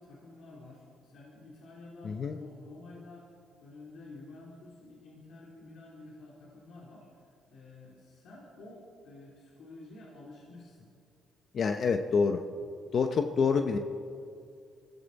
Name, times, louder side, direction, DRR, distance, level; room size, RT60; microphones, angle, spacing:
voice 1, 0.0-3.3 3.6-10.9 13.3-13.5, left 2 dB, 70° left, -4 dB, 3.0 m, -50 dB
voice 2, 2.0-2.4 11.5-12.4 12.9-13.8, left 5 dB, 55° left, 6 dB, 0.8 m, -27 dB
22.5 x 15.0 x 4.1 m, 2.4 s
cardioid pair, 90°, 0 cm